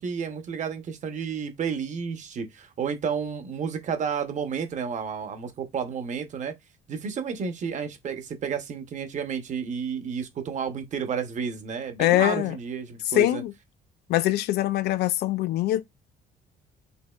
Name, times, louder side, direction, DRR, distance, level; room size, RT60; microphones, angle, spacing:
voice 1, 0.0-6.5 6.9-13.4, right 6 dB, 45° right, 0.8 m, -31 dB
voice 2, 12.0-12.6 13.1-13.5 14.1-15.8, left 15 dB, 75° left, 0.4 m, -23 dB
5.2 x 2.8 x 2.3 m
cardioid pair, 110°, 17 cm